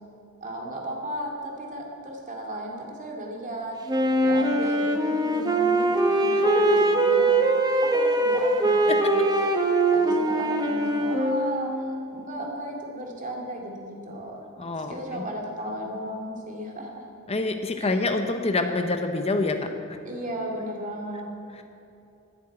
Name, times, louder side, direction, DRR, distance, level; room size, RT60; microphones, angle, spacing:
voice 1, 0.4-7.3 7.8-9.3 9.6-14.3 14.8-17.1 17.8-18.0 20.0-21.3, right 1 dB, 35° right, 0 dB, 2.5 m, -35 dB
Wind instrument woodwind instrument, 3.9-11.9, right 2 dB, 20° right, 1.1 m, -22 dB
voice 2, 6.2-6.9 8.9-9.0 14.6-15.2 17.3-19.7, left 2 dB, 30° left, 6 dB, 0.8 m, -26 dB
11.5 x 9.7 x 9.0 m, 2.8 s
head